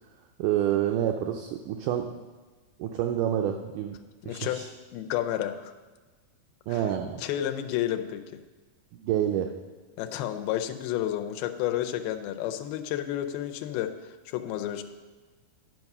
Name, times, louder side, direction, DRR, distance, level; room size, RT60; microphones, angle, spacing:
voice 1, 0.4-2.1 2.8-4.0 4.2-4.7 6.7-7.2 8.9-9.5, right 11 dB, 90° right, 4 dB, 1.8 m, -28 dB
voice 2, 4.2-4.6 4.9-5.7 6.7-6.8 7.2-8.2 10.0-14.8, left 12 dB, 90° left, 7 dB, 2.5 m, -31 dB
11.0 x 6.0 x 5.4 m, 1.3 s
omnidirectional pair, 4.2 m